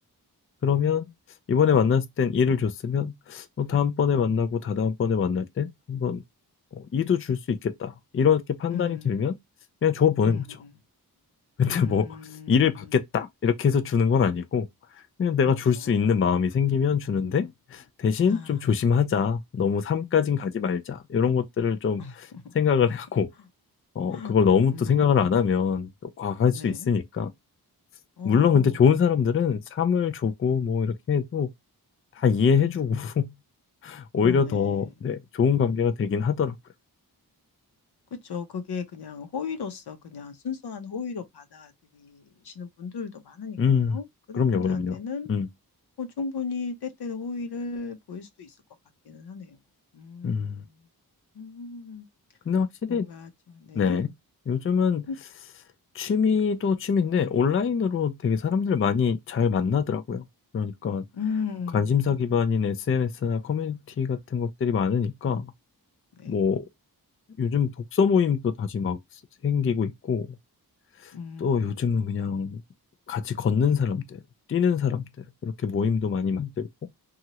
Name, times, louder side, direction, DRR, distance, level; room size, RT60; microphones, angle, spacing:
voice 1, 0.6-1.1 1.5-6.2 6.7-9.3 9.8-10.6 11.6-12.1 12.5-14.7 15.2-22.0 22.5-23.3 24.0-27.3 28.2-31.5 32.2-33.3 33.8-36.5 43.6-44.0 44.3-45.0 45.3-45.5 50.2-50.6 52.5-53.0 53.7-54.1 54.5-55.1 55.9-60.2 60.5-61.1 61.7-65.5 66.3-66.7 67.4-69.0 69.4-70.3 71.0-71.1 71.4-72.6 73.1-74.2 74.5-75.0 75.4-76.7, left 6 dB, 35° left, 0.4 m, -24 dB
voice 2, 8.7-9.2 10.2-10.7 11.7-12.9 15.8-16.2 18.2-18.7 22.0-22.5 24.1-24.3 24.7-25.3 26.5-26.9 28.2-28.8 34.1-34.9 38.1-43.6 43.9-45.3 46.0-48.6 49.0-49.6 49.9-50.9 51.3-52.1 52.9-54.0 55.1-55.2 61.1-62.2 66.2-66.4 71.1-71.7, left 5 dB, 85° left, 0.8 m, -36 dB
2.9 x 2.4 x 2.8 m
wide cardioid pair, 90°, 38 cm